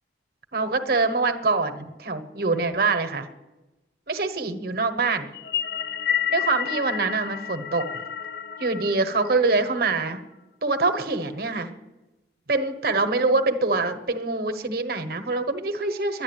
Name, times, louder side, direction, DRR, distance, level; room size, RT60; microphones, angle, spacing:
voice 1, 0.5-3.3 4.1-5.3 6.3-7.9 8.6-10.2 10.6-11.7 12.5-16.2, right 3 dB, 55° right, 7 dB, 1.2 m, -24 dB
sound 1, 5.3-9.9, left 9 dB, 65° left, 0.6 m, -30 dB
11.5 x 9.8 x 9.0 m, 1.1 s
head